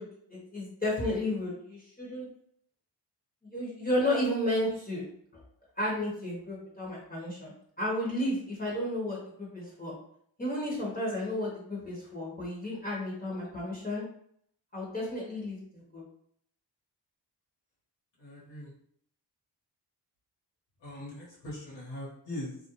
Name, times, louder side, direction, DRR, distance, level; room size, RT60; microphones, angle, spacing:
voice 1, 0.0-2.3 3.4-5.1 5.8-9.9 10.4-14.0 14.7-16.0, left 1 dB, 20° left, -5 dB, 0.9 m, -33 dB
voice 2, 18.2-18.7 20.8-22.6, left 1 dB, 75° left, -7 dB, 1.1 m, -41 dB
2.4 x 2.1 x 2.9 m, 0.66 s
cardioid pair, 65°, 44 cm